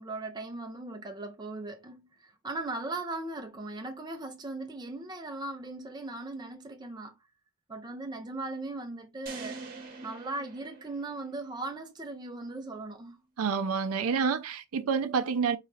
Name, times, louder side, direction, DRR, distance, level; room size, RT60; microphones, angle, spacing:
voice 1, 0.0-7.1 7.7-9.6 10.0-13.2, right 2 dB, 20° right, 0.5 m, -38 dB
sound 1, 9.3-11.5, right 3 dB, 40° right, 1.0 m, -44 dB
voice 2, 13.4-15.6, right 6 dB, 70° right, 0.4 m, -28 dB
3.9 x 2.3 x 3.1 m
head